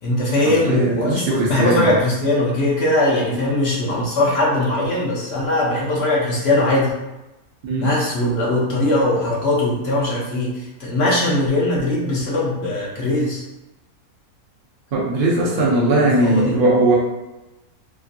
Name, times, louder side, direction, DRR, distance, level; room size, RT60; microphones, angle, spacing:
voice 1, 0.0-6.9 7.8-13.4 15.4-16.6, left 1 dB, 55° left, -5 dB, 0.8 m, -20 dB
voice 2, 0.7-2.0 3.3-3.4 7.6-7.9 14.9-16.9, right 2 dB, 70° right, -4 dB, 0.5 m, -19 dB
3.0 x 2.6 x 2.5 m, 1.0 s
omnidirectional pair, 1.6 m